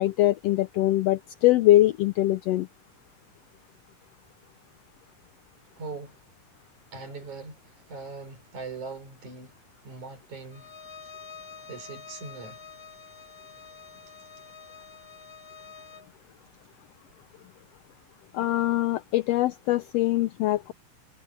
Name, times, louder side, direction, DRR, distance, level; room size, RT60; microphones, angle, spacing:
voice 1, 0.0-2.7 18.3-20.7, left 15 dB, 80° left, 1.4 m, -23 dB
voice 2, 5.8-6.2 6.9-9.6 9.8-10.7 11.7-12.6, right 4 dB, 70° right, 7.2 m, -41 dB
Bowed string instrument, 10.5-16.1, left 5 dB, 15° left, 4.7 m, -47 dB
omnidirectional pair, 3.5 m